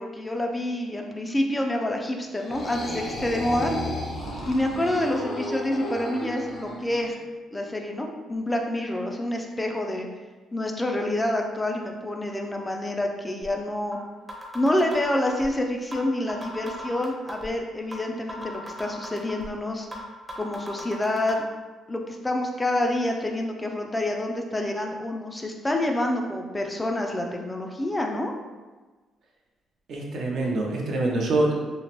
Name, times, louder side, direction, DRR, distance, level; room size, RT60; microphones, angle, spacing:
voice 1, 0.0-3.7 4.5-7.1 7.5-10.1 10.5-14.0 14.5-19.9 20.3-21.4 21.9-28.3, left 1 dB, 15° left, 2 dB, 0.3 m, -27 dB
sound 1, 2.3-7.1, left 1 dB, 55° left, 0.7 m, -33 dB
sound 2, 13.4-13.5 13.9-14.0 14.3-15.5 15.9-16.0 16.3-17.5 17.9-18.0 18.3-19.5 19.9-20.0 20.3-21.3, equal, 25° right, 0.6 m, -37 dB
voice 2, 29.9-31.5, right 2 dB, 65° right, -1 dB, 0.6 m, -25 dB
3.0 x 2.0 x 2.8 m, 1.3 s
cardioid pair, 90°, 0 cm